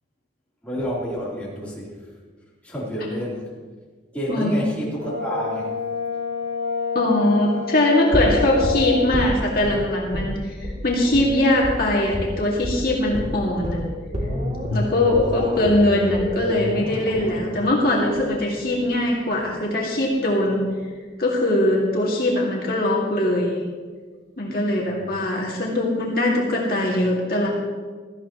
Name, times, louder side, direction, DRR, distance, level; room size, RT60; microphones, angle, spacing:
voice 1, 0.6-2.2 2.6-3.5 4.1-5.7 15.2-15.6 24.8-25.3, equal, 10° left, -7 dB, 3.4 m, -30 dB
voice 2, 4.3-4.6 6.9-10.5 10.8-13.8 14.7-20.6 21.2-23.6 24.4-27.5, left 1 dB, 55° left, -3 dB, 2.1 m, -21 dB
Brass instrument, 5.0-9.1, left 5 dB, 90° right, 2.6 m, -28 dB
sound 1, 8.1-9.7 10.1-10.3 10.6-10.8 11.1-11.3 11.6-11.8 12.1-12.3 12.6-12.8 13.1-19.1 19.4-19.5, equal, 40° right, 2.6 m, -29 dB
17.0 x 14.0 x 3.0 m, 1.5 s
head